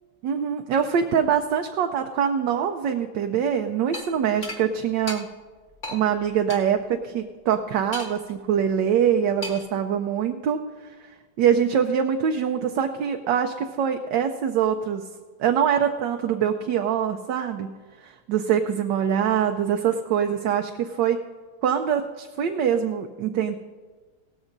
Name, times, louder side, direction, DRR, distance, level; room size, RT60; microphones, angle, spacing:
voice 1, 0.2-5.3 5.9-10.6 11.4-15.0 15.4-17.8 18.0-21.2 21.6-23.6, right 8 dB, 75° right, 5 dB, 1.3 m, -24 dB
sound 1, 3.9-4.1 4.4-4.6 5.1-5.2 5.8-6.0 6.5-6.6 7.9-8.3 9.4-9.7, left 2 dB, 30° left, 1.7 m, -34 dB
17.5 x 14.0 x 2.6 m, 1.4 s
omnidirectional pair, 2.0 m